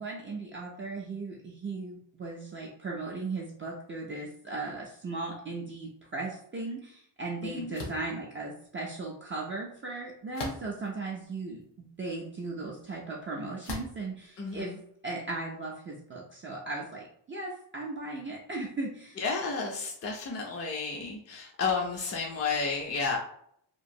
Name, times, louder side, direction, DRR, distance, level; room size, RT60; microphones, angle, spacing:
voice 1, 0.0-14.7 15.0-19.2, right 3 dB, 30° right, -3 dB, 0.4 m, -37 dB
voice 2, 7.4-7.7 14.4-14.8 19.2-23.2, left 4 dB, 35° left, 0 dB, 0.4 m, -32 dB
sound 1, 7.7-8.1 10.3-10.9 11.6-11.7 13.6-14.0, left 2 dB, 80° left, 0.9 m, -38 dB
2.9 x 2.4 x 2.6 m, 0.67 s
wide cardioid pair, 150°, 42 cm